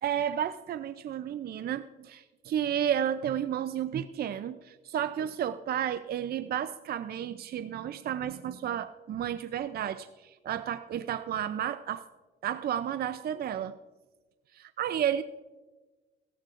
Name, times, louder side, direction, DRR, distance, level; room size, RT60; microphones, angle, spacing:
voice 1, 0.0-12.0 12.4-13.8 14.5-15.2, right 9 dB, 50° right, 13 dB, 0.4 m, -32 dB
16.5 x 14.0 x 2.5 m, 1.2 s
cardioid pair, 90°, 20 cm